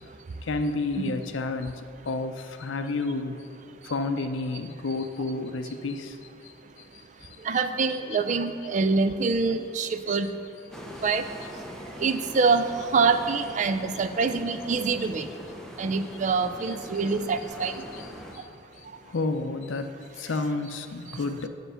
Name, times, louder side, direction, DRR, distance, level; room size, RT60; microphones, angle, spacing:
voice 1, 0.4-3.4 3.8-6.2 7.9-8.2 10.1-10.2 12.3-12.5 13.6-13.7 15.0-15.1 16.6-16.8 17.0-17.1 17.6-18.1 18.3-18.4 19.1-19.9 20.2-21.5, left 3 dB, 75° left, 8 dB, 0.5 m, -31 dB
voice 2, 7.4-10.4 11.0-11.4 11.9-17.9 18.4-18.5 18.8-19.0 21.1-21.2, right 4 dB, 40° right, 9 dB, 0.3 m, -26 dB
sound 1, 10.7-18.4, equal, ahead, 0.6 m, -42 dB
7.9 x 6.0 x 5.5 m, 2.5 s
head